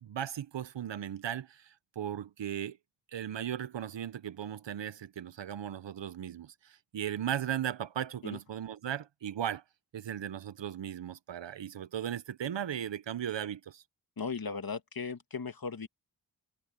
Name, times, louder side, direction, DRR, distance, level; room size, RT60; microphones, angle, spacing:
voice 1, 0.0-2.8 3.1-9.6 9.9-13.8, right 10 dB, 75° right, 0.9 m, -37 dB
voice 2, 14.2-15.9, left 5 dB, 50° left, 1.9 m, -37 dB
cardioid pair, 45°, 44 cm